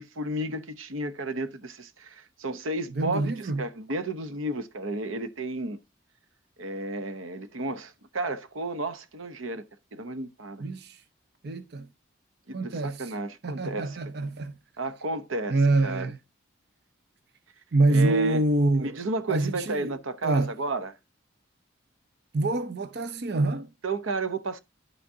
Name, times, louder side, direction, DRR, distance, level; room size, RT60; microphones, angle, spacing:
voice 1, 0.0-3.3 3.6-5.8 6.6-9.6 9.9-10.6 12.5-14.0 14.8-15.6 15.8-16.1 17.9-18.4 18.8-21.0 23.8-24.6, right 2 dB, 85° right, 0.9 m, -32 dB
voice 2, 2.9-3.6 10.6-11.0 11.4-11.9 12.5-13.1 13.4-14.5 15.5-16.1 17.7-19.0 19.3-20.0 20.2-20.5 22.3-23.7, right 2 dB, 50° right, 0.6 m, -26 dB
11.0 x 6.1 x 2.7 m
head